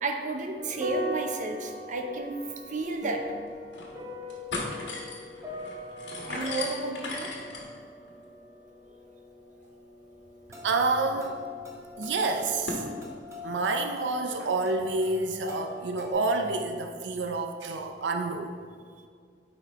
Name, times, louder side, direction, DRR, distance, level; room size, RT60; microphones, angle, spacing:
voice 1, 0.0-2.3 2.7-3.2 6.3-7.3, right 2 dB, 45° right, 3 dB, 0.7 m, -31 dB
sound 1, 0.6-16.1, left 2 dB, 20° right, 1.0 m, -41 dB
sound 2, 2.5-2.6 2.9-3.0 3.5-3.9 4.2-12.9, left 2 dB, 90° left, 1.4 m, -40 dB
voice 2, 10.6-11.4 12.0-12.8 13.4-18.5, right 3 dB, 90° right, 5 dB, 0.5 m, -28 dB
9.2 x 5.0 x 3.0 m, 2.2 s
head